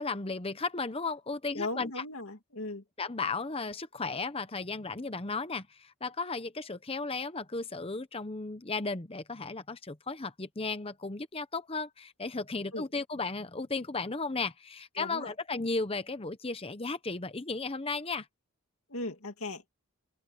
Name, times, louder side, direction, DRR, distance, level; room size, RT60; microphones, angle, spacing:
voice 1, 0.0-2.0 3.0-18.3, left 3 dB, 25° left, 0.9 m, -35 dB
voice 2, 1.5-2.8 12.7-12.9 15.0-15.3 18.9-19.7, left 2 dB, 70° left, 2.6 m, -37 dB
head